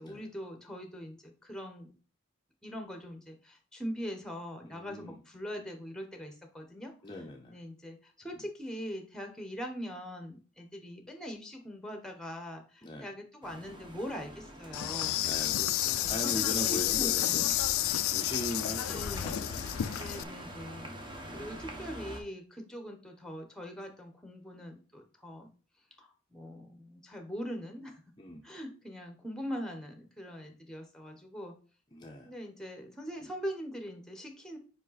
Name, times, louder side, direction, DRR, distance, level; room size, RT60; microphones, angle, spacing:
voice 1, 0.0-1.9 2.6-6.9 7.5-15.3 16.0-17.5 18.9-19.5 20.0-20.9 21.3-25.5 26.0-27.9 28.4-31.5 32.2-34.6, equal, 5° left, 4 dB, 0.9 m, -42 dB
voice 2, 4.6-5.2 7.0-7.6 12.8-13.1 15.2-17.5 18.1-20.1 21.3-21.5 28.2-28.5 31.9-32.3 33.2-33.3, left 1 dB, 20° left, 0 dB, 0.6 m, -40 dB
sound 1, 13.4-22.2, equal, 20° right, 1.0 m, -45 dB
Insect, 14.7-20.2, left 14 dB, 80° left, 0.4 m, -30 dB
5.1 x 4.9 x 4.1 m, 0.38 s
head